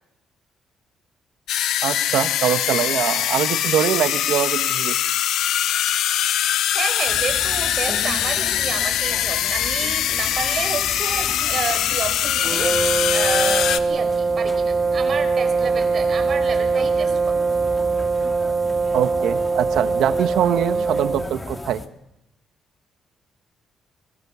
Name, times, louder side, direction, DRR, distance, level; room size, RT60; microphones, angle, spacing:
sound 1, 1.5-13.8, left 11 dB, 85° left, 1.0 m, -22 dB
voice 1, 1.8-5.0 18.9-21.8, right 10 dB, 80° right, 10 dB, 1.4 m, -23 dB
voice 2, 6.7-17.4, right 5 dB, 50° right, 7 dB, 4.8 m, -30 dB
sound 2, 7.1-21.9, left 2 dB, 15° left, 2.0 m, -36 dB
sound 3, 12.4-21.4, right 4 dB, 35° right, 2.7 m, -22 dB
21.5 x 21.0 x 7.1 m, 0.84 s
cardioid pair, 90°, 0 cm